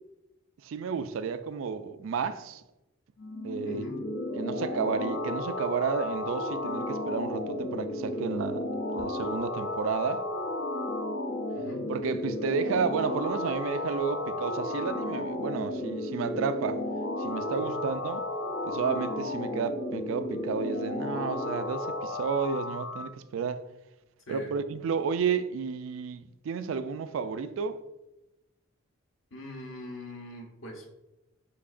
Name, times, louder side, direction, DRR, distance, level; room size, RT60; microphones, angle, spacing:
voice 1, 0.6-2.6 3.4-3.9 4.3-8.6 8.9-10.3 11.9-16.8 17.2-18.2 18.6-23.6 24.3-27.8, right 6 dB, 80° right, 0.3 m, -32 dB
sound 1, 3.2-23.1, left 1 dB, 60° left, 0.4 m, -33 dB
voice 2, 3.6-4.0 11.5-11.8 17.5-17.8 24.3-24.6 29.3-30.9, left 1 dB, 75° left, 1.1 m, -42 dB
5.8 x 3.5 x 2.5 m
head